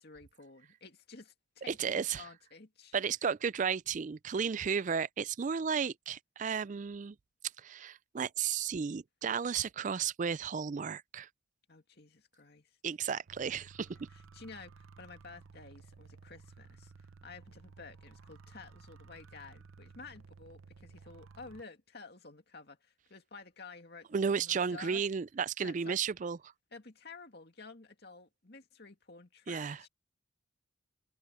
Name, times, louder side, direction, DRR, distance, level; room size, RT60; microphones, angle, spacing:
voice 1, 0.0-2.9 11.7-12.8 13.9-25.0 25.6-26.0 26.7-29.9, left 4 dB, 50° left, 2.4 m, -52 dB
voice 2, 1.7-2.2 2.9-7.2 7.6-11.3 12.8-13.9 24.1-26.4 29.5-29.9, right 6 dB, 35° right, 0.3 m, -33 dB
sound 1, 13.3-21.6, right 4 dB, 80° right, 0.7 m, -55 dB
head